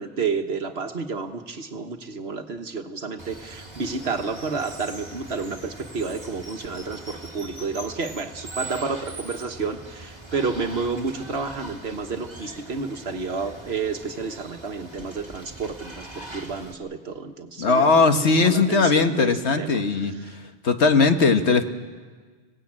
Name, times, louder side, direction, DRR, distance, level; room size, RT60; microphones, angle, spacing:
voice 1, 0.0-20.4, right 4 dB, 60° right, 7 dB, 1.6 m, -30 dB
Water, 3.2-16.7, right 1 dB, 25° right, 2.2 m, -41 dB
voice 2, 17.6-20.1 20.6-21.6, left 4 dB, 70° left, 7 dB, 1.7 m, -19 dB
26.0 x 18.0 x 8.8 m, 1.5 s
omnidirectional pair, 1.2 m